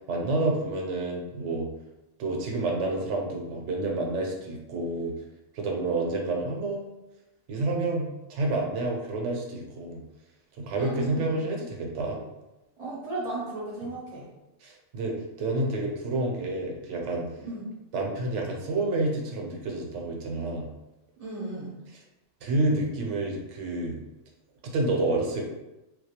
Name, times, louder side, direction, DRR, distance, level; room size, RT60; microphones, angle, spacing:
voice 1, 0.1-1.7 2.2-5.1 5.5-6.8 7.5-10.0 10.6-12.2 14.6-17.3 17.9-20.7 22.4-24.0 24.6-25.4, right 2 dB, 80° right, 0 dB, 0.9 m, -29 dB
voice 2, 10.8-11.3 12.8-14.3 17.4-17.6 21.2-21.7, right 2 dB, 50° right, -5 dB, 0.5 m, -35 dB
2.3 x 2.2 x 2.8 m, 0.98 s
omnidirectional pair, 1.2 m